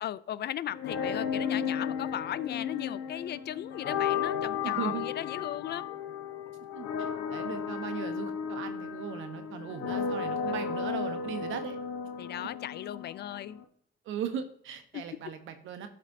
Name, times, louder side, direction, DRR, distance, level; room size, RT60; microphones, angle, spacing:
voice 1, 0.0-6.0 10.5-10.9 12.2-13.6 14.9-15.0, left 11 dB, 55° left, 17 dB, 0.4 m, -37 dB
sound 1, 0.7-13.6, left 7 dB, 80° left, 1.1 m, -34 dB
voice 2, 4.6-5.1 6.7-6.9 7.3-11.8 14.0-15.9, right 8 dB, 80° right, 8 dB, 1.1 m, -38 dB
12.5 x 5.1 x 2.8 m, 0.63 s
cardioid pair, 90°, 20 cm